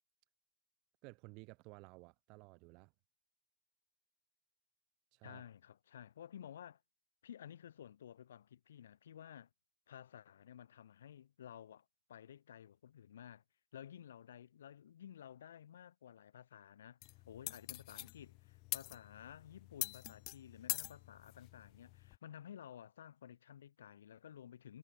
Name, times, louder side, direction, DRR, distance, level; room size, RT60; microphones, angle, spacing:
voice 1, 1.0-2.9 5.1-5.4, right 28 dB, 55° right, 0.9 m, -55 dB
voice 2, 5.2-6.8 7.2-9.5 9.9-13.4 13.7-17.0 17.3-24.8, left 10 dB, 70° left, 0.8 m, -54 dB
sound 1, 17.0-22.2, left 26 dB, 55° left, 0.3 m, -45 dB
figure-of-eight pair, 70°, 0 cm